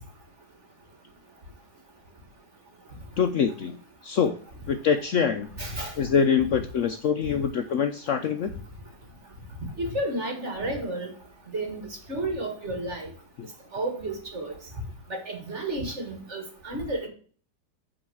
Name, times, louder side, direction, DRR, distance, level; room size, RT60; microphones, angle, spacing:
voice 1, 3.2-3.8 4.0-4.4 4.7-5.5 6.0-8.5, left 7 dB, 85° left, 7 dB, 0.6 m, -24 dB
voice 2, 5.6-5.9 9.8-11.1 11.5-13.1 13.7-14.5 15.1-17.1, right 1 dB, 40° right, 2 dB, 2.1 m, -31 dB
8.8 x 3.8 x 6.2 m, 0.43 s
omnidirectional pair, 2.0 m